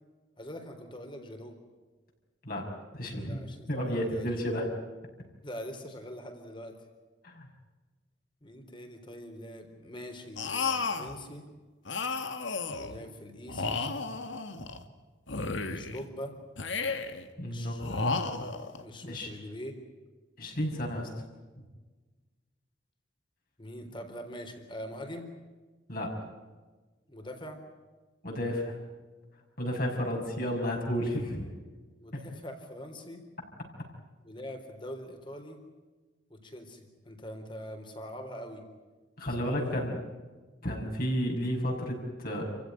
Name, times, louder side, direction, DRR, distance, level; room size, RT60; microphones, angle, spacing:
voice 1, 0.4-1.6 3.2-4.5 5.4-6.7 8.4-11.4 12.8-13.8 15.7-16.3 17.4-18.5 18.8-19.7 23.6-25.3 27.1-27.6 32.0-33.2 34.2-35.6 36.3-38.6 39.4-39.9, equal, 25° left, 6 dB, 3.9 m, -43 dB
voice 2, 2.9-3.4 3.7-4.7 7.2-7.5 17.4-17.8 19.0-19.3 20.4-21.1 25.9-26.3 28.2-28.8 29.6-31.5 39.2-40.0 40.6-42.4, equal, 50° left, 0 dB, 5.9 m, -32 dB
sound 1, 10.4-11.2 11.9-13.0 13.5-14.8 15.3-16.0 16.6-17.3 17.8-18.8, left 4 dB, 75° left, 2.1 m, -33 dB
29.0 x 16.0 x 10.0 m, 1.3 s
head